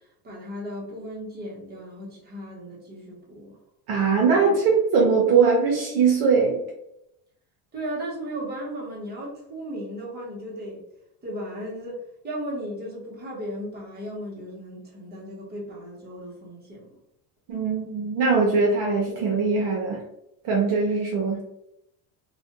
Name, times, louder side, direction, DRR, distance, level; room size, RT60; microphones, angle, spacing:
voice 1, 0.2-3.6 7.7-10.8 11.2-16.8, equal, 20° right, -4 dB, 0.8 m, -36 dB
voice 2, 3.9-6.6 17.5-20.0 20.4-21.4, right 5 dB, 55° right, -2 dB, 0.7 m, -21 dB
2.4 x 2.1 x 2.8 m, 0.82 s
cardioid pair, 150°, 46 cm